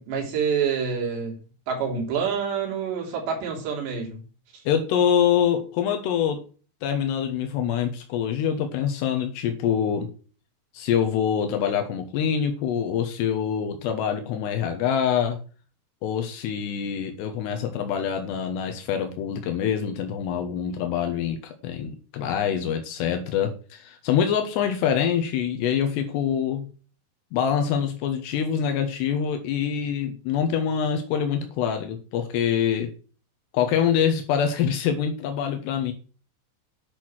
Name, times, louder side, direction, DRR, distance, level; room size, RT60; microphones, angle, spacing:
voice 1, 0.0-1.4 1.7-4.2 4.5-4.6, right 6 dB, 80° right, 0 dB, 5.4 m, -27 dB
voice 2, 4.7-6.4 6.8-10.1 10.7-15.4 16.0-26.7 27.3-32.9 33.5-35.9, left 8 dB, 80° left, 5 dB, 3.1 m, -25 dB
10.5 x 6.2 x 6.2 m, 0.38 s
omnidirectional pair, 4.9 m